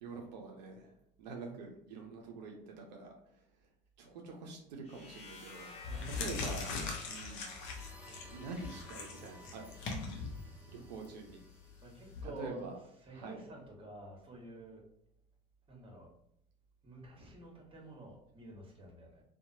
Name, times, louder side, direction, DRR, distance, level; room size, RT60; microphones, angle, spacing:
voice 1, 0.0-3.1 4.0-5.7 6.0-6.8 7.1-7.4 8.2-9.7 10.7-11.4 12.2-12.7 13.1-13.4, right 4 dB, 90° right, 1 dB, 0.4 m, -46 dB
sound 1, 4.8-8.7, left 2 dB, 30° left, 1.0 m, -54 dB
sound 2, 5.0-5.3 5.7-12.2, left 4 dB, 65° left, 0.7 m, -41 dB
voice 2, 5.9-6.3 11.8-14.8 15.7-16.1 16.8-19.2, right 2 dB, 25° right, -1 dB, 1.1 m, -50 dB
sound 3, 7.2-13.0, equal, 5° right, 0.6 m, -56 dB
2.8 x 2.1 x 2.6 m, 0.74 s
hypercardioid pair, 70°, 21 cm